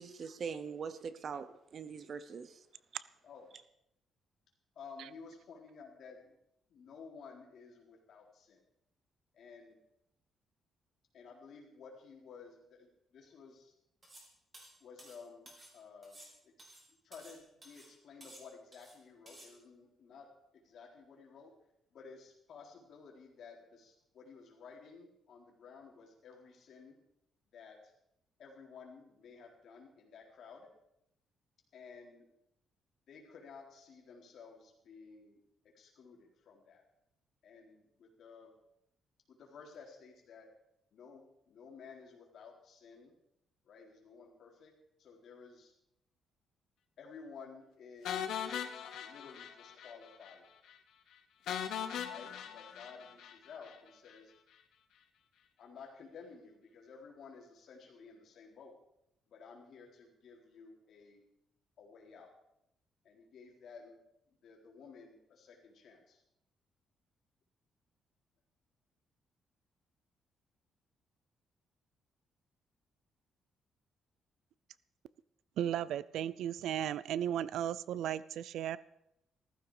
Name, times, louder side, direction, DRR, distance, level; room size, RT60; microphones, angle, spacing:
voice 1, 0.0-2.6, right 6 dB, 40° right, 13 dB, 0.8 m, -42 dB
voice 2, 4.8-6.4 6.7-8.6 9.3-9.8 11.1-13.7 14.8-16.7 17.0-21.5 21.9-27.0 27.5-27.9 28.4-30.7 31.7-32.3 33.1-35.4 35.7-36.8 37.4-38.5 39.3-40.5 40.9-43.2 43.6-44.7 45.0-45.7 47.0-48.5 49.0-50.5 52.0-54.3 55.6-58.7 59.3-61.2 61.8-62.3 63.0-64.0 64.3-66.2, left 5 dB, 55° left, -1 dB, 4.0 m, -54 dB
sound 1, 14.0-14.3 14.5-15.7 16.0-17.4 17.6-17.9 18.2-19.0 19.3-19.5, right 1 dB, 20° right, 4.0 m, -55 dB
sound 2, 48.0-50.0 50.2-50.3 50.7-50.8 51.5-53.8, left 9 dB, 80° left, 1.2 m, -40 dB
voice 3, 75.6-78.8, right 10 dB, 75° right, 19 dB, 0.5 m, -35 dB
15.0 x 14.5 x 5.0 m, 0.80 s
cardioid pair, 160°, 0 cm